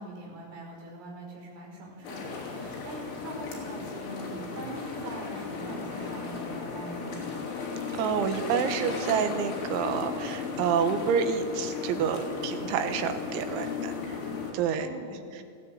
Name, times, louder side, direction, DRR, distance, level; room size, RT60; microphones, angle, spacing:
voice 1, 0.0-7.3 13.8-14.3 14.8-15.3, right 2 dB, 60° right, 0 dB, 7.2 m, -43 dB
sound 1, 2.0-14.5, left 5 dB, 80° left, 5.9 m, -35 dB
voice 2, 8.0-13.9 14.5-14.9, right 7 dB, 80° right, 8 dB, 3.6 m, -28 dB
18.5 x 16.0 x 8.9 m, 2.3 s
omnidirectional pair, 5.4 m